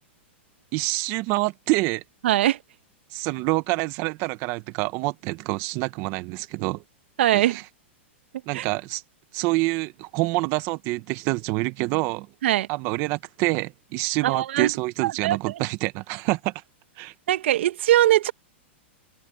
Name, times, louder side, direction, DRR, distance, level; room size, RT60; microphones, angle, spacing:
voice 1, 0.7-2.0 3.1-6.8 7.3-7.6 8.5-9.0 9.3-12.3 12.7-16.5 17.0-17.1, right 22 dB, 40° right, 1.2 m, -26 dB
voice 2, 2.2-2.6 7.2-7.6 8.5-8.7 12.4-12.7 14.2-14.7 15.0-15.4 17.3-18.3, right 13 dB, 70° right, 1.8 m, -21 dB
hypercardioid pair, 135°, 7 cm